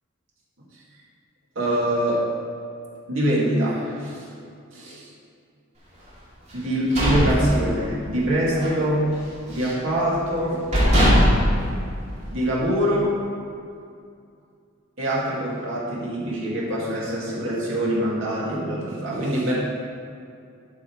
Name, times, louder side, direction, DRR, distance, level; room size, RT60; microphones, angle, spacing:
voice 1, 1.6-2.2 3.1-4.3 4.7-5.1 6.5-9.1 9.5-10.7 12.2-13.2 15.0-19.6, right 1 dB, 70° right, -6 dB, 2.3 m, -24 dB
sound 1, 6.6-8.2 8.5-8.8 9.1-9.9 10.4-10.5 10.7-12.5, equal, 35° right, 2.3 m, -20 dB
11.5 x 5.7 x 4.7 m, 2.4 s
head